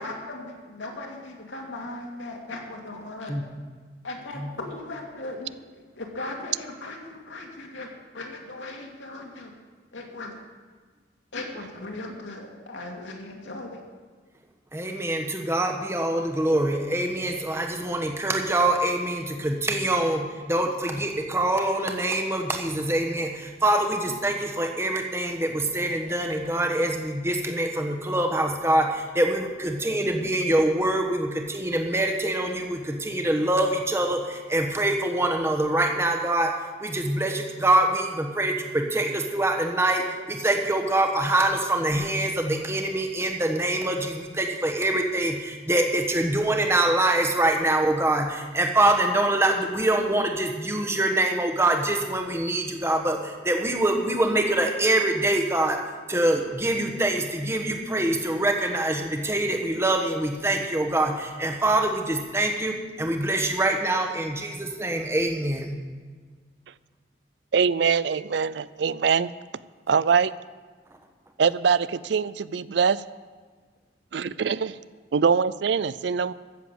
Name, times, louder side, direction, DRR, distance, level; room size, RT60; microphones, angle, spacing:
voice 1, 0.0-3.4 4.0-9.5 9.9-10.3 11.3-13.8, left 2 dB, 80° left, 1 dB, 2.4 m, -38 dB
voice 2, 14.7-36.5 36.8-55.8 56.1-65.7, right 1 dB, 15° right, 3 dB, 1.2 m, -24 dB
voice 3, 67.5-69.3 69.9-70.3 71.4-73.0 74.1-74.8 75.1-76.3, right 6 dB, 65° right, 18 dB, 0.4 m, -23 dB
14.5 x 7.1 x 7.9 m, 1.5 s
head